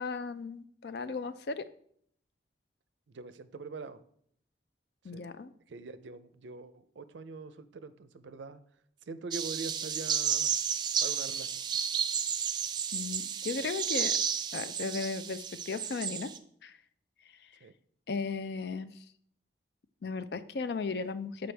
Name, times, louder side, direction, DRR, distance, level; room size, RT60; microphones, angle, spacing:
voice 1, 0.0-1.7 5.0-5.5 12.9-14.2 14.5-16.3 16.6-16.8 18.1-18.9 20.0-21.5, left 4 dB, 65° left, 13 dB, 0.4 m, -36 dB
voice 2, 3.1-4.0 5.1-5.3 5.7-8.6 9.1-10.5 11.0-11.6 17.6-17.7, right 4 dB, 85° right, 13 dB, 0.5 m, -43 dB
sound 1, 9.3-16.4, right 8 dB, 25° right, 0.3 m, -32 dB
7.9 x 5.1 x 3.3 m, 0.66 s
head